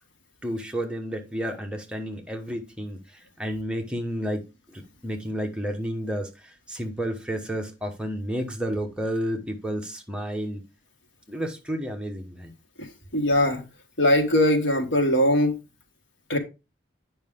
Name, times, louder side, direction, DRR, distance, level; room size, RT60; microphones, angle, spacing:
voice 1, 0.4-10.6 11.3-12.5, equal, 5° right, 1.1 m, -31 dB
voice 2, 12.8-13.6 14.0-15.5 16.3-16.4, left 1 dB, 90° left, 1.7 m, -21 dB
9.0 x 5.5 x 3.7 m
head